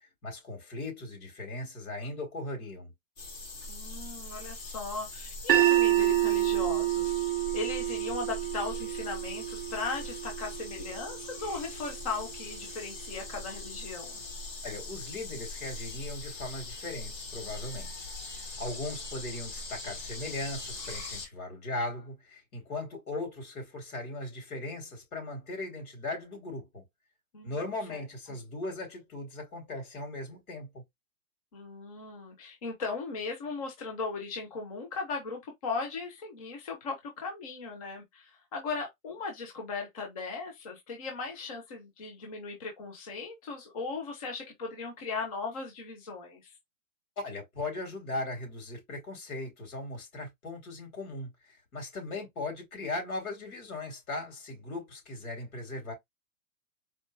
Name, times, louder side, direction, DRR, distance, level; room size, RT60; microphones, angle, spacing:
voice 1, 0.2-2.9 14.6-18.1 18.3-26.8 27.4-30.8 47.2-51.3 51.7-55.9, left 2 dB, 80° left, 3.1 m, -38 dB
sound 1, 3.2-21.3, left 2 dB, 65° left, 2.5 m, -42 dB
voice 2, 3.7-7.1 7.5-14.2 27.3-27.6 27.9-28.4 31.5-46.5, left 4 dB, 25° left, 0.7 m, -38 dB
sound 2, 5.5-11.7, right 14 dB, 40° right, 0.5 m, -28 dB
4.3 x 2.0 x 3.2 m
hypercardioid pair, 175°, 43 cm